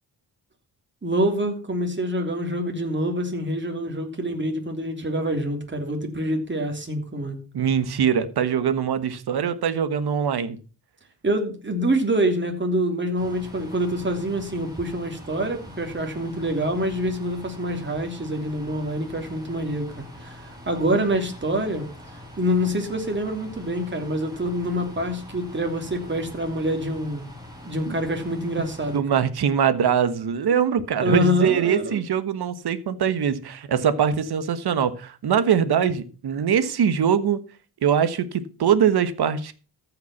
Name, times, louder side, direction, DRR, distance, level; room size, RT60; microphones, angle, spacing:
voice 1, 1.0-7.4 11.2-21.9 22.4-27.3 27.6-29.2 31.0-32.0, equal, 30° right, 3.0 m, -26 dB
voice 2, 7.5-10.6 27.9-28.0 28.9-37.4 37.8-39.5, right 8 dB, 70° right, 1.4 m, -22 dB
sound 1, 13.2-29.0, left 1 dB, 10° right, 5.9 m, -43 dB
14.0 x 5.9 x 6.0 m
cardioid pair, 80°, 40 cm